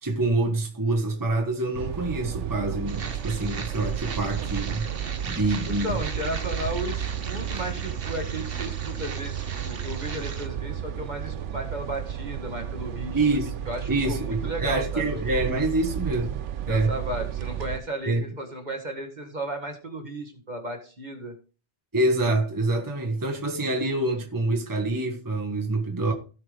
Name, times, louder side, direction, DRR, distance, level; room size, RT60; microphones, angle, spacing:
voice 1, 0.0-4.9 5.2-5.9 13.1-13.6 13.9-16.4 16.7-16.9 18.1-18.2 21.9-26.1, right 2 dB, 15° right, 1.4 m, -26 dB
sound 1, 1.7-17.8, right 9 dB, 90° right, 1.0 m, -33 dB
sound 2, 2.9-10.5, right 5 dB, 55° right, 1.2 m, -38 dB
voice 2, 5.6-13.2 13.7-15.0 15.3-15.5 16.7-21.3, right 1 dB, 40° right, 1.7 m, -34 dB
16.5 x 5.8 x 3.4 m
omnidirectional pair, 1.2 m